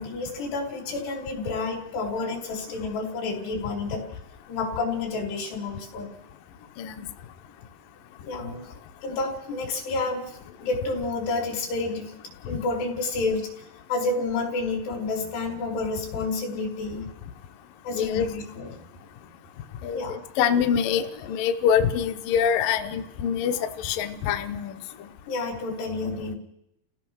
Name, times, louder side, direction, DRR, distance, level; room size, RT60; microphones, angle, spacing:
voice 1, 0.0-4.0 4.5-6.1 8.2-8.7 9.0-12.1 12.5-13.5 13.9-17.0 17.9-18.9 19.9-20.2 25.3-26.4, left 3 dB, 90° left, 0 dB, 5.4 m, -30 dB
voice 2, 17.9-18.3 19.8-24.8, left 8 dB, 70° left, 7 dB, 2.3 m, -25 dB
29.5 x 16.5 x 6.3 m, 0.84 s
omnidirectional pair, 4.6 m